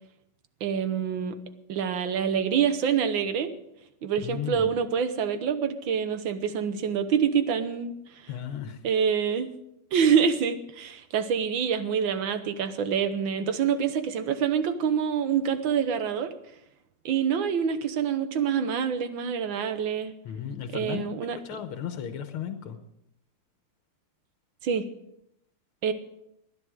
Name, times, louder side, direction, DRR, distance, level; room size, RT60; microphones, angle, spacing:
voice 1, 0.6-1.4 1.7-3.5 4.0-8.3 8.8-9.5 9.9-16.4 17.1-20.1 20.7-21.4 24.6-24.9 25.8-25.9, right 7 dB, 70° right, 10 dB, 1.8 m, -26 dB
voice 2, 4.2-4.7 8.3-8.8 20.3-21.1 21.3-22.8, left 8 dB, 85° left, 7 dB, 1.9 m, -35 dB
19.5 x 10.5 x 4.8 m, 0.79 s
omnidirectional pair, 2.3 m